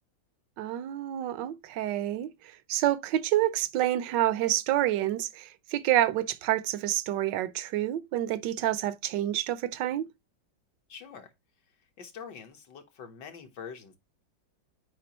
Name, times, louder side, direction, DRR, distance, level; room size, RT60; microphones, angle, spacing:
voice 1, 0.6-10.1, right 13 dB, 75° right, 1.3 m, -28 dB
voice 2, 10.9-11.3 12.0-14.0, left 6 dB, 70° left, 1.8 m, -44 dB
8.6 x 4.8 x 2.9 m
omnidirectional pair, 2.0 m